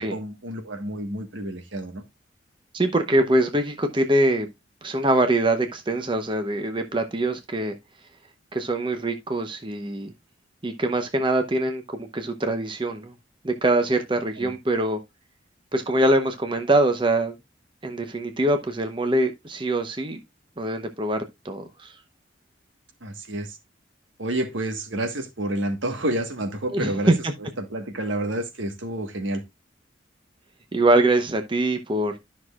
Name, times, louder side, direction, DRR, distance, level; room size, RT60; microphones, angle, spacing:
voice 1, 0.0-2.0 14.4-14.5 23.0-23.6 24.2-27.1 27.4-29.4, right 1 dB, 85° right, 1.5 m, -29 dB
voice 2, 2.7-4.5 4.8-7.7 8.5-10.1 10.6-13.1 13.4-15.0 15.7-17.3 17.8-20.2 20.6-21.2 21.4-21.9 26.7-27.3 30.7-32.2, right 1 dB, 25° right, 0.8 m, -23 dB
12.0 x 6.2 x 2.4 m
head